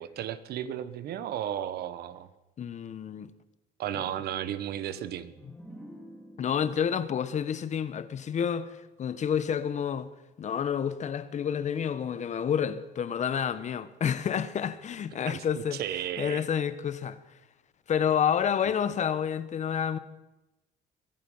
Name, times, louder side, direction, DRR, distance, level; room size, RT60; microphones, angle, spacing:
voice 1, 0.0-2.3 3.8-5.3 15.3-16.4, right 10 dB, 70° right, 1.1 m, -34 dB
voice 2, 2.6-3.3 6.4-10.1 10.4-15.8 16.2-17.2 17.9-20.0, left 8 dB, 45° left, 1.0 m, -29 dB
sound 1, 4.9-8.6, equal, ahead, 4.0 m, -51 dB
23.0 x 11.0 x 5.6 m
cardioid pair, 110°, 17 cm